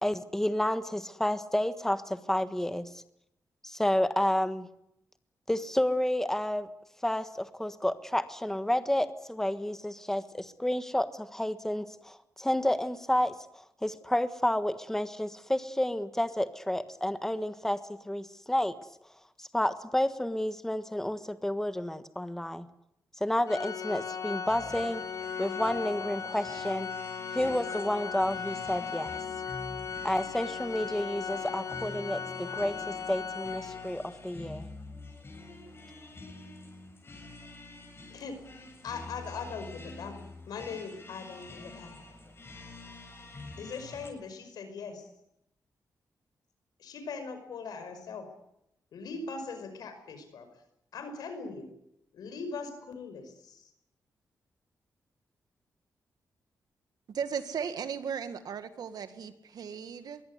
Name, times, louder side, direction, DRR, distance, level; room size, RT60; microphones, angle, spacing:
voice 1, 0.0-2.9 3.6-4.7 5.5-6.7 7.0-17.8 18.0-18.7 19.4-22.7 23.2-25.0 25.4-26.9 27.3-29.2 30.0-34.7, left 1 dB, 5° left, 11 dB, 1.5 m, -30 dB
Organ, 23.5-34.2, left 6 dB, 55° left, 1.4 m, -37 dB
sound 1, 24.5-44.1, left 2 dB, 35° left, 7.8 m, -47 dB
voice 2, 38.8-42.0 43.3-45.0 46.8-48.3 48.9-50.5 50.9-51.7 52.1-53.7, left 4 dB, 90° left, 8 dB, 5.3 m, -40 dB
voice 3, 57.1-60.2, right 7 dB, 75° right, 10 dB, 2.0 m, -36 dB
22.5 x 16.5 x 9.7 m, 0.80 s
cardioid pair, 85°, 7 cm